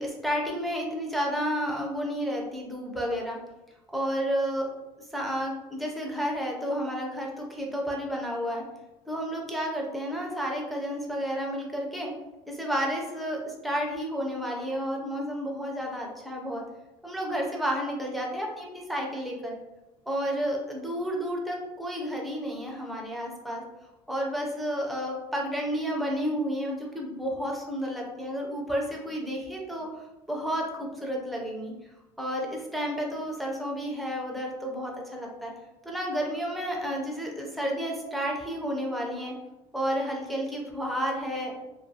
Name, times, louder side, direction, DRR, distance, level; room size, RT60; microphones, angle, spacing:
voice 1, 0.0-3.4 3.9-4.7 5.1-8.6 9.1-12.1 12.5-16.6 17.0-19.6 20.1-23.6 24.1-29.9 30.3-31.7 32.2-35.5 35.8-39.3 39.7-41.5, equal, ahead, -1 dB, 0.4 m, -31 dB
2.4 x 2.2 x 2.6 m, 1.0 s
cardioid pair, 155°, 12 cm